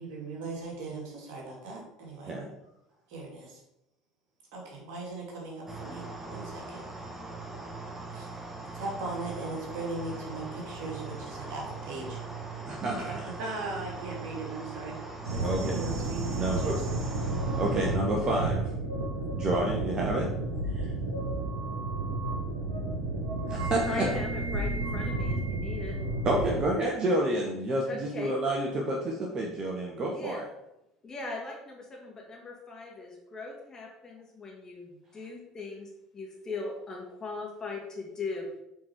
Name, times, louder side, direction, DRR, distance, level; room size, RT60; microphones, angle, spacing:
voice 1, 0.0-2.3 3.1-3.6 4.5-6.8 8.1-8.3 8.7-12.2 13.0-15.0 15.3-17.1, right 2 dB, 60° right, -3 dB, 2.9 m, -39 dB
sound 1, 5.7-18.0, right 3 dB, 15° right, 1.5 m, -41 dB
voice 2, 12.7-13.3 15.4-15.8 16.3-16.8 17.6-18.9 19.3-20.3 23.5-24.1 26.2-30.4, right 1 dB, 35° right, -1 dB, 1.5 m, -29 dB
sound 2, 15.2-26.6, right 2 dB, 80° right, 1.8 m, -32 dB
voice 3, 23.9-26.0 27.9-28.4 30.1-30.4 31.0-38.5, left 3 dB, 30° left, -1 dB, 2.3 m, -39 dB
8.2 x 4.5 x 4.8 m, 0.86 s
figure-of-eight pair, 65°, 2 cm